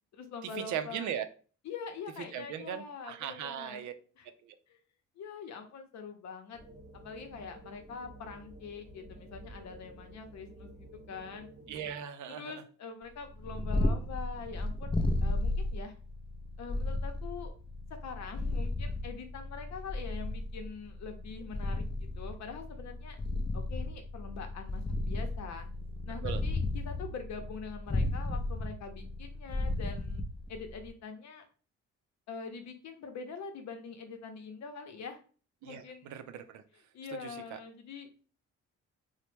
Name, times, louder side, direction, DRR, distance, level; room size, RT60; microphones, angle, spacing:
voice 1, 0.1-1.1 1.6-3.9 4.2-4.3 4.7-4.8 5.2-6.6 7.0-11.5 12.3-15.9 16.6-17.5 18.0-23.2 23.5-25.7 26.1-30.2 30.5-31.4 32.3-35.2 35.6-36.1 36.9-38.1, left 5 dB, 65° left, 6 dB, 0.7 m, -44 dB
voice 2, 0.7-1.3 2.3-3.9 4.4-4.6 11.7-12.6 26.2-26.4 35.6-36.6 37.2-37.6, right 9 dB, 75° right, 9 dB, 0.5 m, -38 dB
sound 1, 6.5-12.0, right 1 dB, 25° right, 0.8 m, -51 dB
Purr, 13.2-30.9, left 2 dB, 20° left, 0.5 m, -34 dB
3.0 x 2.1 x 3.3 m, 0.39 s
cardioid pair, 90°, 30 cm